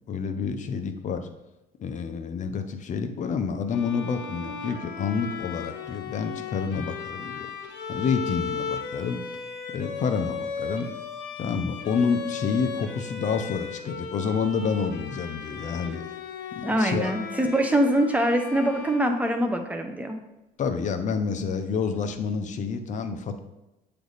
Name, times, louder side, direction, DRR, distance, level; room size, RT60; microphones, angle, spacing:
voice 1, 0.1-1.3 1.8-7.5 7.9-9.2 9.7-10.9 11.4-16.0 16.6-17.1 20.6-23.4, left 5 dB, 45° left, 7 dB, 0.7 m, -28 dB
Bowed string instrument, 3.7-19.7, left 6 dB, 85° left, 1.0 m, -36 dB
voice 2, 16.6-20.2, right 1 dB, 10° right, 4 dB, 0.8 m, -24 dB
7.6 x 3.4 x 4.0 m, 0.97 s
cardioid pair, 110°, 17 cm